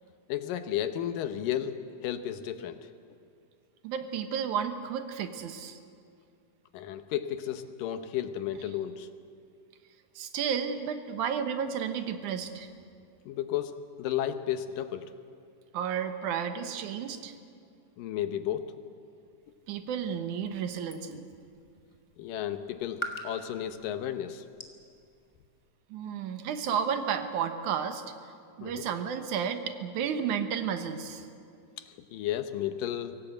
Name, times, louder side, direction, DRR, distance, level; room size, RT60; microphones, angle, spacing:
voice 1, 0.3-2.9 6.7-9.1 13.3-15.1 18.0-18.7 22.2-24.5 28.6-28.8 31.8-33.2, left 11 dB, 80° left, 9 dB, 2.7 m, -33 dB
voice 2, 3.8-5.8 10.2-12.7 15.7-17.4 19.7-21.3 25.9-28.0 28.6-31.3, right 7 dB, 70° right, 8 dB, 2.5 m, -32 dB
sound 1, 19.4-25.7, right 2 dB, 25° left, 0.6 m, -46 dB
24.5 x 17.5 x 8.0 m, 2.3 s
omnidirectional pair, 3.8 m